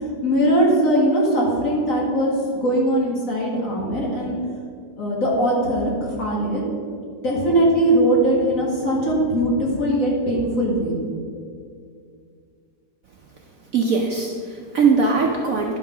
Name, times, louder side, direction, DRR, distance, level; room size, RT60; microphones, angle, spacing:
voice 1, 0.2-4.4 5.0-6.6 7.2-10.9, right 1 dB, 45° left, -3 dB, 2.3 m, -20 dB
voice 2, 13.7-15.8, right 4 dB, 60° right, 0 dB, 1.0 m, -20 dB
11.0 x 5.9 x 5.7 m, 2.2 s
omnidirectional pair, 2.0 m